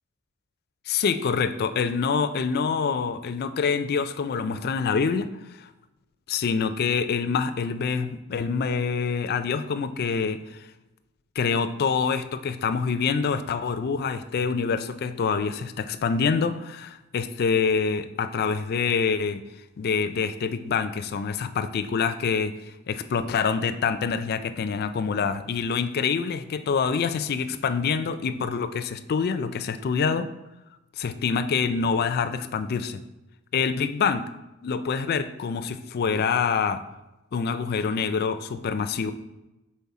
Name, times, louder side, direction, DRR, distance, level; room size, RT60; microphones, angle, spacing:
voice 1, 0.9-5.3 5.6-5.7 6.3-10.6 11.4-19.4 19.8-30.3 31.0-33.0 33.5-34.3 34.6-36.8 37.3-39.1, left 5 dB, 45° left, 10 dB, 0.3 m, -26 dB
5.5 x 4.3 x 4.7 m, 0.99 s
head